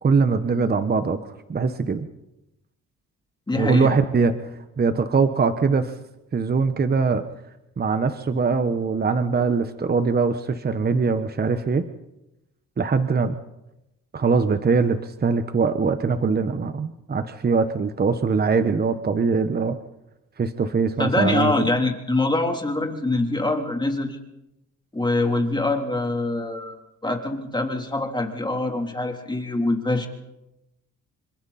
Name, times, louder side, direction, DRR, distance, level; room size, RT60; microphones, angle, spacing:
voice 1, 0.0-1.2 1.5-2.1 3.6-4.3 4.8-6.0 6.3-7.2 7.8-11.8 12.8-13.3 14.1-19.8 20.4-21.5, right 4 dB, 30° right, 9 dB, 1.2 m, -22 dB
voice 2, 3.5-3.9 21.0-24.2 24.9-26.8 27.0-30.1, left 2 dB, 15° left, 2 dB, 3.5 m, -24 dB
28.0 x 25.5 x 4.3 m, 0.93 s
cardioid pair, 90°, 30 cm